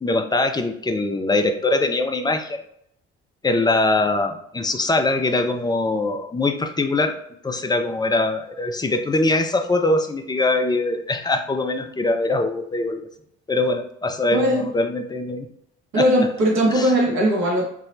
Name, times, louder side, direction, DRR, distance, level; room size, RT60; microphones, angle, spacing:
voice 1, 0.0-2.6 3.4-7.2 7.4-13.1 13.5-15.5 15.9-16.0 16.7-16.9, left 2 dB, 15° left, 5 dB, 0.4 m, -22 dB
voice 2, 14.3-14.7 15.9-17.6, equal, 60° right, -2 dB, 1.3 m, -19 dB
5.3 x 2.1 x 2.6 m, 0.71 s
figure-of-eight pair, 45°, 31 cm